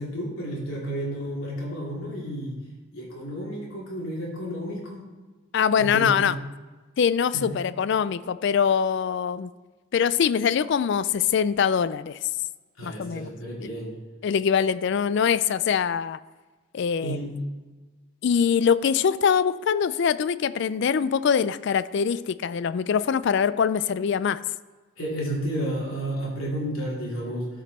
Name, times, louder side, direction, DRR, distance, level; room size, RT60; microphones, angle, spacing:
voice 1, 0.0-2.6 2.9-5.0 5.8-6.3 7.3-7.5 12.8-13.9 17.0-17.3 25.0-27.5, right 1 dB, 75° left, -4 dB, 3.0 m, -31 dB
voice 2, 5.5-6.3 7.0-9.5 9.9-12.2 12.8-13.3 13.6-13.7 14.2-16.2 16.7-17.2 18.2-24.4, left 7 dB, 55° left, 16 dB, 0.3 m, -23 dB
13.0 x 5.2 x 4.2 m, 1.3 s
head